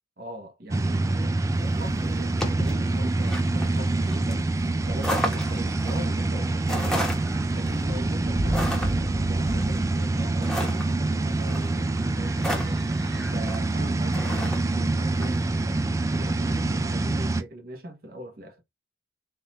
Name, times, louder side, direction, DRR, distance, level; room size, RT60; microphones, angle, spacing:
voice 1, 0.2-4.5 4.9-7.0 7.5-12.8 13.3-18.6, equal, 55° right, 1.2 m, -41 dB
sound 1, 0.7-17.4, right 2 dB, 15° right, 0.3 m, -26 dB
sound 2, 1.6-15.4, equal, ahead, 1.1 m, -33 dB
4.0 x 2.5 x 4.2 m
head